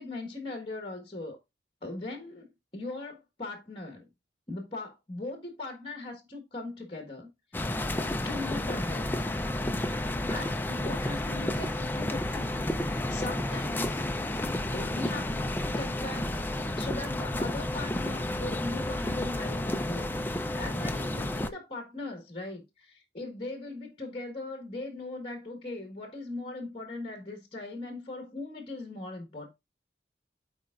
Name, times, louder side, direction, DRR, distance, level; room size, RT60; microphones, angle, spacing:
voice 1, 0.0-1.4 1.8-4.1 4.5-7.7 8.2-9.1 9.7-12.6 12.8-14.1 14.7-16.3 16.8-29.5, left 2 dB, 30° left, 1.5 m, -39 dB
sound 1, 7.5-21.5, left 1 dB, 10° left, 0.4 m, -31 dB
13.0 x 4.4 x 2.4 m
head